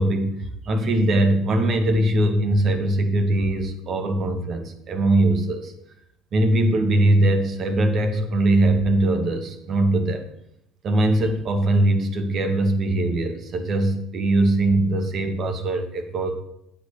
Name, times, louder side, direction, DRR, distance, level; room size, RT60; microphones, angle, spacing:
voice 1, 0.0-5.7 6.3-10.2 10.8-16.3, right 1 dB, 50° right, 6 dB, 2.3 m, -21 dB
9.4 x 8.1 x 6.9 m, 0.78 s
supercardioid pair, 90°, 0 cm